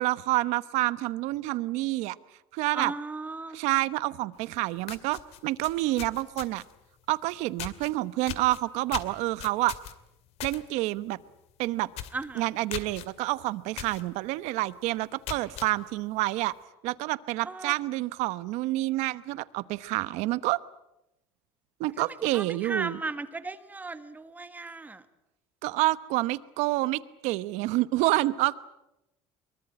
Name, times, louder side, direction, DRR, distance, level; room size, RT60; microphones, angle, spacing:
voice 1, 0.0-2.2 2.5-2.9 3.5-6.6 7.1-9.7 10.4-11.2 11.6-11.9 12.4-16.5 16.8-20.6 21.8-23.0 25.6-28.6, right 18 dB, 70° right, 16 dB, 1.0 m, -28 dB
voice 2, 2.7-3.6 12.1-12.5 17.4-17.7 22.0-25.0, right 3 dB, 15° right, 11 dB, 1.4 m, -36 dB
sound 1, 4.4-4.5 4.8-6.8 7.6-7.9 8.3-10.6 11.0-11.2 11.5-11.6 11.9-12.2 12.7-13.1 13.8-14.0 14.5-14.6 15.1-15.7, left 11 dB, 60° left, 2.2 m, -38 dB
24.0 x 22.5 x 8.8 m, 0.91 s
cardioid pair, 135°, 12 cm